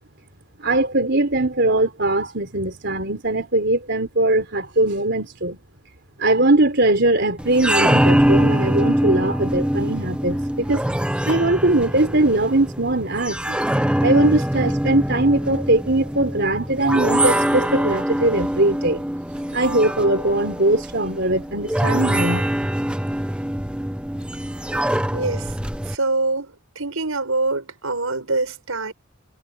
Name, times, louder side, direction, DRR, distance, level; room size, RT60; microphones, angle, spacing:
voice 1, 0.6-5.6 6.2-10.9 11.3-19.0 19.5-22.5, right 2 dB, 55° right, 3.8 m, -20 dB
sound 1, 7.4-26.0, equal, 5° right, 0.9 m, -23 dB
voice 2, 25.1-25.5 25.9-28.9, right 3 dB, 80° right, 5.7 m, -25 dB
head